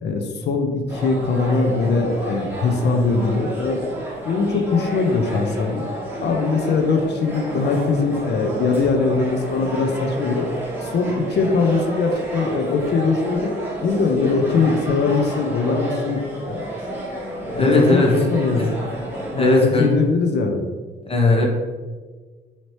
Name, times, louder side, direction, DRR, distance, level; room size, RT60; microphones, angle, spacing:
voice 1, 0.0-3.8 4.2-5.8 6.2-10.5 10.8-16.7 17.5-18.8 19.3-20.6, left 4 dB, 60° left, 4 dB, 0.5 m, -21 dB
sound 1, 0.9-19.6, right 1 dB, 10° right, 1.2 m, -31 dB
voice 2, 17.6-18.1 18.5-18.6 19.3-19.9 21.1-21.5, left 2 dB, 30° left, -1 dB, 0.8 m, -17 dB
4.3 x 2.8 x 3.1 m, 1.4 s
cardioid pair, 90°, 20 cm